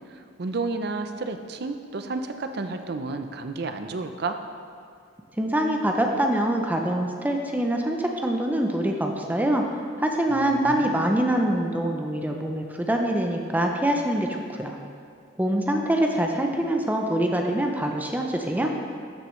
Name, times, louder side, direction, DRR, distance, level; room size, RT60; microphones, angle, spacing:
voice 1, 0.1-4.4 10.3-11.2, right 3 dB, 55° right, 7 dB, 0.6 m, -32 dB
voice 2, 5.4-9.6 10.0-14.8 15.4-18.7, right 1 dB, 10° right, 2 dB, 0.5 m, -24 dB
13.0 x 6.6 x 3.2 m, 2.3 s
head